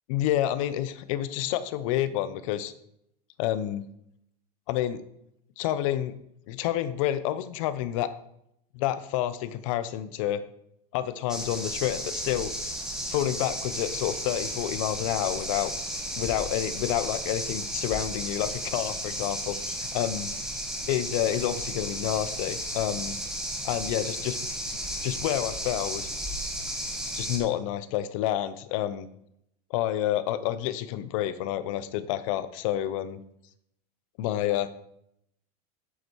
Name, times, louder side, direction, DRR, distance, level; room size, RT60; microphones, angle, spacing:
voice 1, 0.1-2.7 3.4-3.9 4.7-5.0 5.6-6.1 6.5-8.1 8.7-10.4 10.9-12.5 13.1-15.7 16.2-19.6 19.9-20.3 20.9-23.2 23.6-24.4 25.0-26.1 27.1-29.1 29.7-33.2 34.2-34.7, left 12 dB, 55° left, 13 dB, 0.7 m, -29 dB
sound 1, 11.3-27.4, equal, 5° right, 1.2 m, -34 dB
8.1 x 7.9 x 4.6 m, 0.76 s
supercardioid pair, 170°, 20 cm